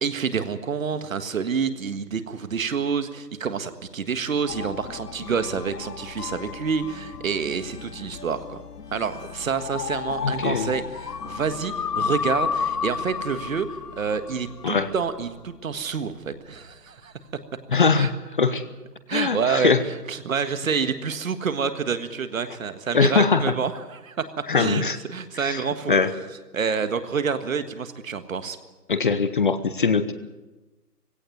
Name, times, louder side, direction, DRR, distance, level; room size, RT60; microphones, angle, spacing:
voice 1, 0.0-8.6 8.9-13.7 14.0-17.1 17.9-18.1 19.1-24.2 24.5-26.0 26.5-28.6, right 6 dB, 55° right, 11 dB, 1.7 m, -28 dB
sound 1, 4.5-15.5, left 6 dB, 70° left, 1.5 m, -33 dB
voice 2, 10.2-10.7 14.6-14.9 17.7-18.1 18.4-18.6 19.1-19.8 22.9-23.4 24.5-25.0 25.4-25.6 25.9-26.1 28.9-30.1, left 5 dB, 30° left, 13 dB, 0.8 m, -21 dB
18.0 x 17.0 x 9.4 m, 1.1 s
hypercardioid pair, 160°, 48 cm